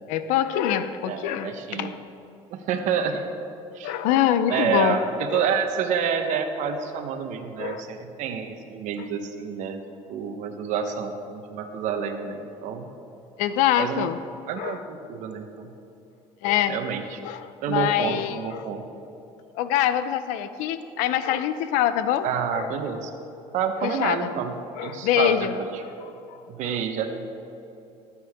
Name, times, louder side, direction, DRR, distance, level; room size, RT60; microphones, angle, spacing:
voice 1, 0.1-2.0 3.8-5.0 5.3-5.5 7.6-7.8 13.4-14.2 14.6-14.8 16.4-16.8 17.2-18.7 19.6-22.3 22.5-22.7 23.8-24.3 24.8-25.6 26.0-26.4 26.6-26.8, left 11 dB, 90° left, 12 dB, 0.7 m, -25 dB
voice 2, 1.1-2.0 2.5-3.2 3.7-3.9 4.5-9.8 10.1-12.8 13.8-14.1 14.5-15.7 16.7-17.2 17.6-18.8 22.2-23.1 23.5-24.5 24.8-25.8 26.5-27.1, right 7 dB, 75° right, 6 dB, 1.2 m, -28 dB
19.5 x 8.8 x 3.7 m, 3.0 s
cardioid pair, 100°, 13 cm